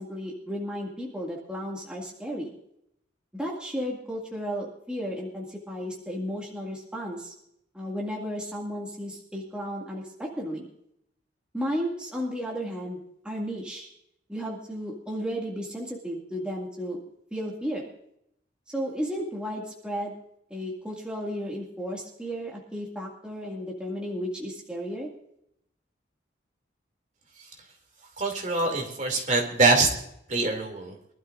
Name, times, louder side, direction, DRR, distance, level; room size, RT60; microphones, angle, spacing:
voice 1, 0.0-2.6 3.3-7.3 7.7-10.7 11.5-13.0 13.2-13.9 14.3-17.0 17.3-17.9 18.7-20.1 20.5-25.1, equal, 5° right, -3 dB, 2.1 m, -33 dB
voice 2, 28.2-29.9 30.3-30.9, right 3 dB, 40° right, 3 dB, 2.7 m, -24 dB
24.0 x 12.5 x 2.6 m, 0.75 s
head